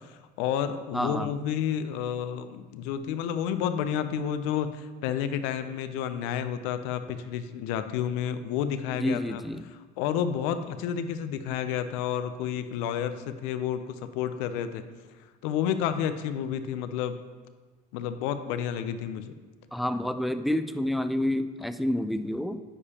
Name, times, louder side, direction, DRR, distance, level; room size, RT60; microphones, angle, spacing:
voice 1, 0.0-9.4 10.0-14.8 15.4-17.2 17.9-19.3, left 9 dB, 80° left, 11 dB, 0.5 m, -30 dB
voice 2, 0.9-1.3 9.0-9.7 19.7-22.6, left 1 dB, ahead, 10 dB, 0.3 m, -28 dB
9.7 x 4.9 x 2.9 m, 1.3 s
supercardioid pair, 85°, 20 cm